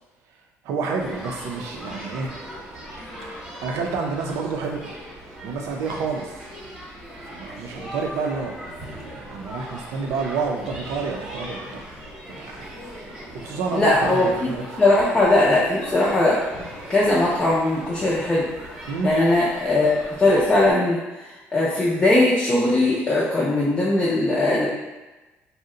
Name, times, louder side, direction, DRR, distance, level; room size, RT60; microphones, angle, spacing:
voice 1, 0.6-2.4 3.6-4.9 5.4-6.3 7.3-11.6 12.3-12.7 13.0-14.8 18.9-19.2, right 4 dB, 85° right, 1 dB, 0.5 m, -29 dB
sound 1, 1.0-20.7, equal, 10° right, 0.9 m, -39 dB
voice 2, 13.7-14.5 14.8-16.4 16.9-18.5 19.0-24.7, left 2 dB, 15° left, -8 dB, 0.4 m, -20 dB
2.7 x 2.1 x 3.7 m, 1.1 s
cardioid pair, 170°, 5 cm